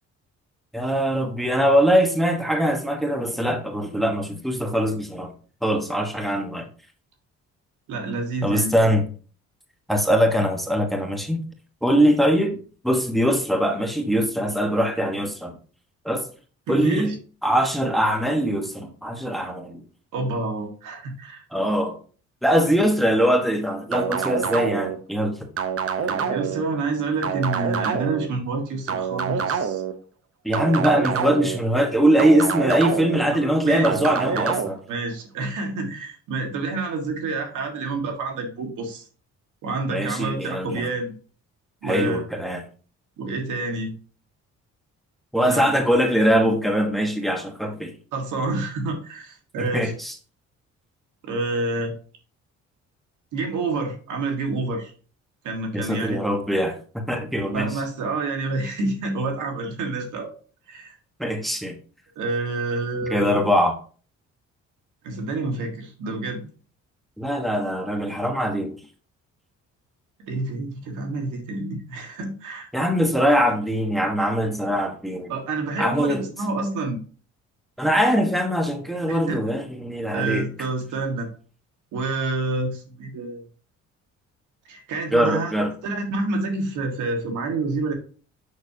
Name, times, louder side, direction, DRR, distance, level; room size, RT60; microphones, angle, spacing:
voice 1, 0.7-5.3 5.6-6.7 8.4-9.0 9.9-11.4 11.8-12.6 12.8-15.6 16.0-16.3 16.7-17.2 17.4-19.8 21.5-22.0 22.4-25.5 30.4-34.8 39.9-40.8 41.8-42.6 45.3-47.9 49.7-50.1 55.7-57.8 61.2-61.7 63.1-63.7 67.2-68.8 72.7-75.3 75.8-76.2 77.8-80.5 85.1-85.7, equal, ahead, 1.2 m, -22 dB
voice 2, 7.9-8.7 16.7-17.1 20.1-21.4 26.0-29.8 33.2-33.9 34.3-34.4 34.9-39.1 39.6-41.1 41.8-42.3 43.2-43.9 45.5-45.7 48.1-49.9 51.2-51.9 53.3-54.9 55.4-56.2 57.5-60.3 60.7-60.9 62.2-63.4 65.0-66.4 70.3-72.7 75.3-77.0 79.1-79.4 80.1-81.3 81.9-83.4 84.7-85.5 85.8-87.9, right 3 dB, 85° right, 1.7 m, -28 dB
sound 1, 23.9-25.0 25.6-26.6 27.2-28.3 28.9-29.9 30.5-31.6 32.2-33.2 33.8-34.7, right 7 dB, 50° right, 0.8 m, -26 dB
6.5 x 6.1 x 2.8 m
cardioid pair, 90°, 30 cm